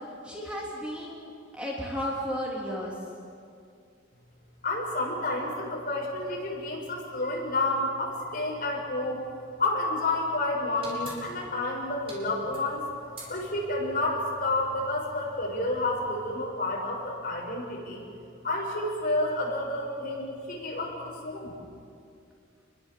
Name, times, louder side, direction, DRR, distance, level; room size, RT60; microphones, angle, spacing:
voice 1, 0.2-3.0, equal, 5° right, -4 dB, 3.2 m, -34 dB
voice 2, 4.6-9.2 9.6-12.8 13.3-18.0 18.4-21.5, left 2 dB, 45° left, -2 dB, 7.1 m, -30 dB
sound 1, 10.8-16.3, right 2 dB, 30° right, 5.8 m, -48 dB
29.0 x 22.0 x 7.6 m, 2.4 s
head